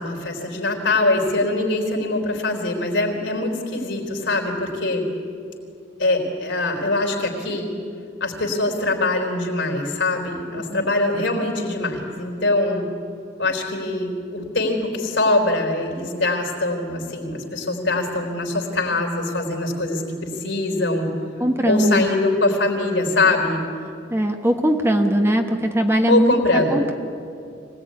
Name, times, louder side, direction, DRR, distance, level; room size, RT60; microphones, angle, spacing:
voice 1, 0.0-5.0 6.0-7.7 8.2-12.9 13.4-21.1 21.7-23.6 26.1-26.8, left 2 dB, 75° left, 1 dB, 4.2 m, -23 dB
voice 2, 21.4-22.1 24.1-26.3 26.7-26.9, equal, 15° right, 4 dB, 1.4 m, -20 dB
24.0 x 18.0 x 9.6 m, 2.5 s
head